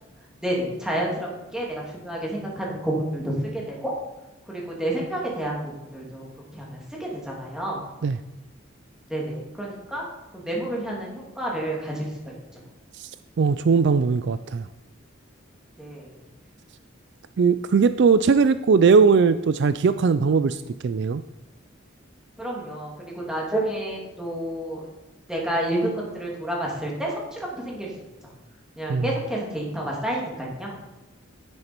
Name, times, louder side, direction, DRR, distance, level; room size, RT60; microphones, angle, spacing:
voice 1, 0.4-3.9 4.5-6.3 6.5-7.9 9.1-10.1 10.3-12.3 15.8-16.2 22.4-24.8 25.3-27.9 28.2-28.3 28.8-30.8, right 1 dB, 5° right, -3 dB, 2.7 m, -30 dB
voice 2, 13.4-14.7 17.4-21.2 28.9-29.1, right 5 dB, 60° right, 13 dB, 0.4 m, -19 dB
9.9 x 9.7 x 4.5 m, 1.0 s
head